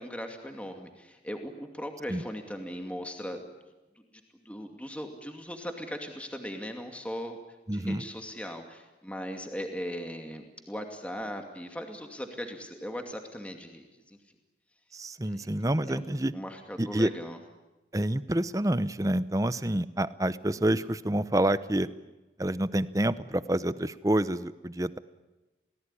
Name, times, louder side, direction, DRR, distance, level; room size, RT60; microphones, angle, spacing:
voice 1, 0.0-3.6 4.4-7.4 7.7-14.2 15.2-15.5 15.9-16.0 16.3-17.4, equal, 5° left, 4 dB, 2.5 m, -39 dB
voice 2, 7.7-8.0 14.9-16.3 16.8-17.1 17.9-21.9 22.4-25.0, right 1 dB, 20° right, 15 dB, 0.8 m, -28 dB
29.0 x 19.0 x 10.0 m, 1.1 s
head